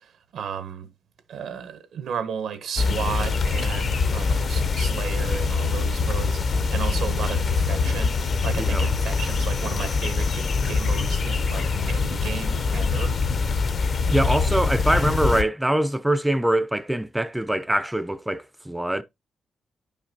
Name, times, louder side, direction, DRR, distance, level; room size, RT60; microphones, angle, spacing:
voice 1, 0.3-0.9 1.3-8.2 8.4-13.1, right 7 dB, 85° right, 1.2 m, -34 dB
sound 1, 2.8-15.4, left 4 dB, 45° left, 0.7 m, -24 dB
voice 2, 8.6-8.9 14.1-19.0, right 1 dB, 5° right, 0.5 m, -23 dB
10.0 x 5.8 x 2.8 m
cardioid pair, 130°, 0 cm